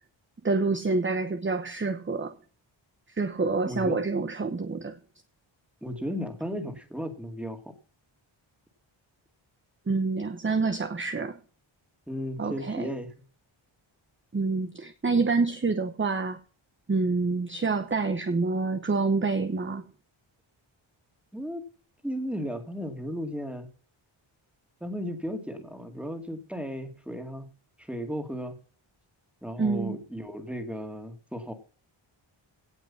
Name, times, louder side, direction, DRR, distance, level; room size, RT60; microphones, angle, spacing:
voice 1, 0.4-2.4 3.1-5.0 9.9-11.4 12.4-12.9 14.3-16.4 16.9-19.8 29.6-30.0, right 3 dB, 25° right, 0.9 m, -27 dB
voice 2, 3.7-4.0 5.8-7.7 12.1-13.1 21.3-21.6 22.0-23.7 24.8-27.5 27.8-28.6 29.4-31.5, equal, ahead, 2.4 m, -35 dB
17.5 x 5.9 x 5.6 m
wide cardioid pair, 165°, 49 cm